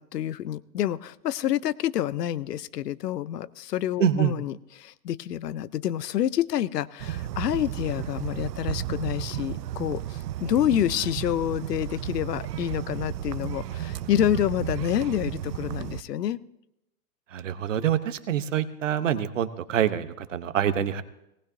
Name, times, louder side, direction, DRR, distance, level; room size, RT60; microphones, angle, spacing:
voice 1, 0.0-16.4, left 11 dB, 80° left, 18 dB, 0.7 m, -28 dB
voice 2, 4.0-4.3 17.3-21.0, right 9 dB, 50° right, 12 dB, 0.9 m, -26 dB
sound 1, 7.0-16.0, right 12 dB, 80° right, 0.7 m, -33 dB
19.0 x 18.5 x 2.7 m, 0.86 s
hypercardioid pair, 175°, 48 cm